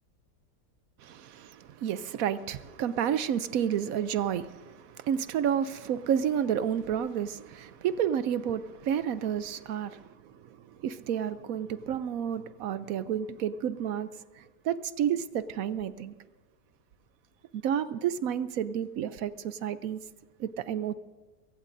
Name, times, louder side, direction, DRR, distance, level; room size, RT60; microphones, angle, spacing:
voice 1, 1.0-14.1 14.4-16.1 17.5-20.0 20.4-20.9, right 9 dB, 70° right, 0.9 m, -31 dB
22.5 x 17.0 x 2.6 m
omnidirectional pair, 1.8 m